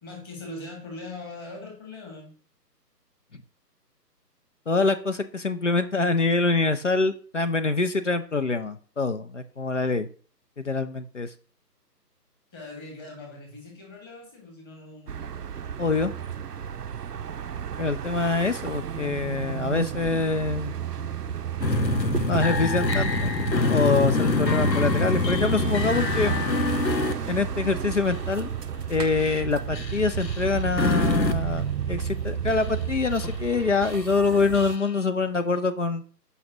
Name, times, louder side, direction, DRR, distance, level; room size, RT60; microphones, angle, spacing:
voice 1, 0.0-2.3 12.5-15.3, left 2 dB, 15° left, 0 dB, 1.9 m, -41 dB
voice 2, 4.7-10.1 10.6-11.3 15.8-16.1 17.8-20.7 22.3-23.3 23.7-26.4 27.3-28.5 28.9-36.0, left 3 dB, 45° left, 11 dB, 0.6 m, -25 dB
sound 1, 15.1-34.8, right 8 dB, 70° right, 0.6 m, -32 dB
sound 2, 21.6-27.7 28.1-28.2 28.6-28.8 29.7-31.5 32.0-32.1 32.5-32.8 33.1-33.6 33.8-34.9, left 3 dB, 85° left, 1.0 m, -26 dB
14.0 x 5.5 x 2.9 m, 0.42 s
figure-of-eight pair, 145°, 49 cm